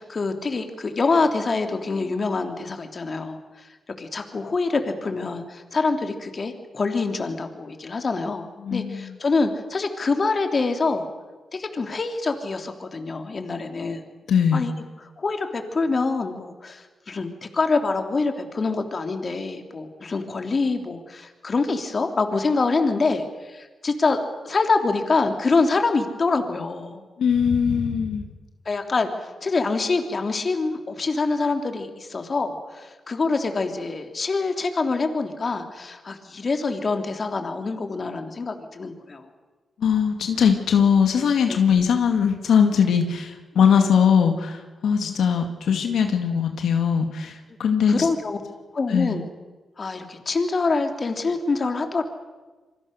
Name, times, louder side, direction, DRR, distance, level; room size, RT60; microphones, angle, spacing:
voice 1, 0.0-3.7 4.0-11.1 11.5-14.0 14.5-14.7 15.2-27.0 28.6-39.3 41.5-41.6 43.5-43.7 47.9-48.4 48.7-49.2 49.8-52.0, left 3 dB, 45° left, 5 dB, 3.0 m, -25 dB
voice 2, 8.6-9.1 14.3-14.7 27.2-28.3 39.8-48.1 48.9-49.2, left 7 dB, 85° left, 5 dB, 2.1 m, -20 dB
27.0 x 23.5 x 6.6 m, 1.3 s
cardioid pair, 85°, 0 cm